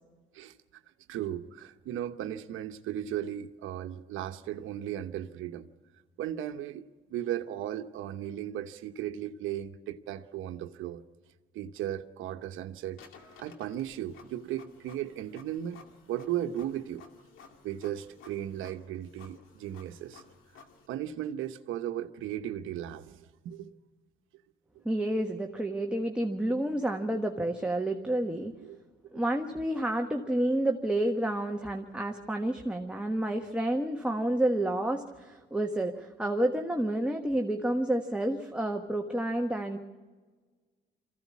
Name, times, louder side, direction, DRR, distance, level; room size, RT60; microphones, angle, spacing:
voice 1, 1.1-5.7 6.2-6.8 7.1-11.0 11.5-13.0 13.4-15.8 16.1-17.1 17.6-20.2 20.9-23.8 28.6-28.8, right 11 dB, 85° right, 9 dB, 1.0 m, -36 dB
Printer, 12.9-20.9, left 5 dB, 90° left, 2.4 m, -55 dB
voice 2, 24.8-28.5 29.1-39.8, right 1 dB, 5° right, 2 dB, 1.4 m, -29 dB
23.0 x 15.5 x 8.4 m, 1.4 s
cardioid pair, 90°, 20 cm